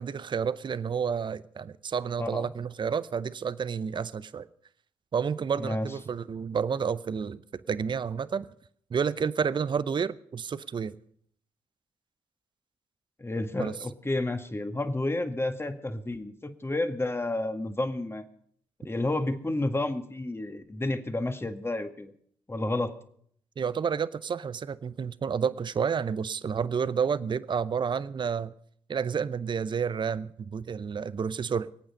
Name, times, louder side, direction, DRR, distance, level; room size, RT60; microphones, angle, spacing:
voice 1, 0.0-4.5 5.1-7.4 7.7-8.5 8.9-11.0 13.6-13.7 23.6-28.5 28.9-31.7, right 6 dB, 35° right, 17 dB, 0.7 m, -30 dB
voice 2, 5.6-5.9 13.2-18.2 18.8-22.1 22.5-22.9, left 2 dB, 20° left, 8 dB, 1.8 m, -30 dB
24.5 x 8.8 x 5.5 m, 0.62 s
hypercardioid pair, 45°, 13 cm